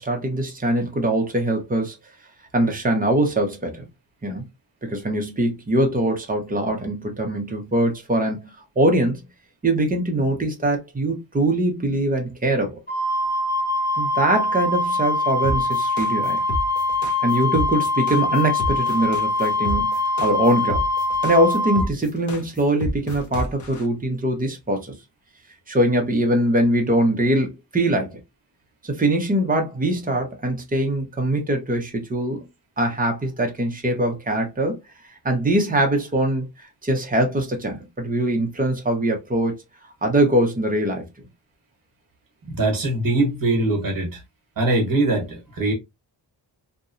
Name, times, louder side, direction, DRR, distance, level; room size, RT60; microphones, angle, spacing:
voice 1, 0.0-2.0 2.5-3.8 4.2-4.4 4.8-9.2 9.6-12.8 14.0-16.4 17.2-20.8 21.2-24.9 25.7-28.2 28.8-32.4 32.8-34.8 35.2-36.5 36.8-39.6 40.0-41.1, right 1 dB, 20° right, 0.6 m, -22 dB
Wind instrument woodwind instrument, 12.9-21.8, left 2 dB, 25° left, 1.1 m, -23 dB
sound 1, 15.4-23.8, equal, 45° left, 0.5 m, -29 dB
voice 2, 42.5-44.2 44.6-45.7, right 2 dB, 50° right, 1.1 m, -22 dB
2.8 x 2.2 x 2.4 m
wide cardioid pair, 180°, 44 cm